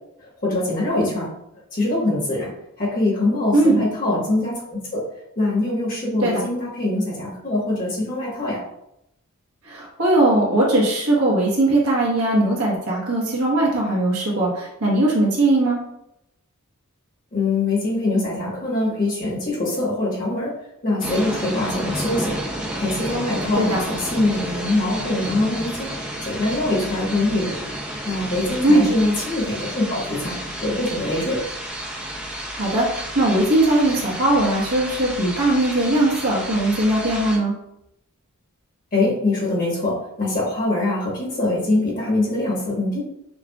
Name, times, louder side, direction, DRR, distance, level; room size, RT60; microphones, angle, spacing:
voice 1, 0.2-1.3 1.7-2.5 2.8-5.0 5.4-8.6 17.3-20.6 20.8-25.9 26.2-27.6 28.0-31.4 38.9-43.0, left 2 dB, 40° left, -4 dB, 1.3 m, -23 dB
voice 2, 9.6-15.8 23.5-23.8 28.6-28.9 32.5-37.5, right 1 dB, 70° right, -4 dB, 1.3 m, -19 dB
sound 1, 21.0-37.4, right 1 dB, 5° right, 0.5 m, -31 dB
5.6 x 2.4 x 2.4 m, 0.81 s
head